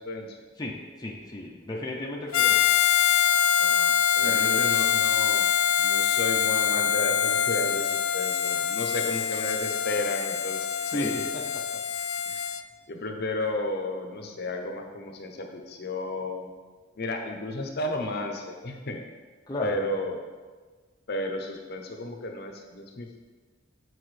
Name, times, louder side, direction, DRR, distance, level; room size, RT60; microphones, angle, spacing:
voice 1, 0.0-0.4 2.4-2.5 3.6-5.5 5.8-11.1 12.3-12.4 12.9-16.5 17.0-19.0 19.6-20.2 21.1-23.2, left 2 dB, 50° left, 4 dB, 0.7 m, -33 dB
voice 2, 0.6-2.7 4.2-4.6 10.9-11.8 19.5-20.0, left 1 dB, 20° left, -2 dB, 0.5 m, -34 dB
Harmonica, 2.3-12.6, left 8 dB, 90° left, 0.4 m, -24 dB
7.9 x 4.7 x 3.2 m, 1.4 s
head